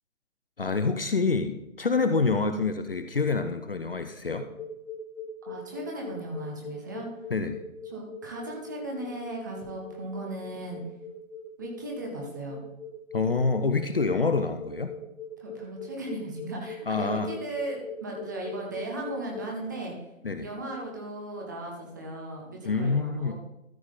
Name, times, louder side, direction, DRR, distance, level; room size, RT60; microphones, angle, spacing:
voice 1, 0.6-4.5 7.3-7.6 13.1-14.9 16.9-17.3 20.2-20.5 22.6-23.3, left 4 dB, 45° left, 8 dB, 0.6 m, -27 dB
sound 1, 4.3-19.7, left 4 dB, 10° left, 1.5 m, -41 dB
voice 2, 5.5-7.1 7.9-10.8 11.6-12.6 15.4-19.9 20.4-23.3, right 1 dB, 15° right, -1 dB, 0.9 m, -37 dB
13.0 x 6.1 x 3.8 m, 0.87 s
figure-of-eight pair, 145°, 42 cm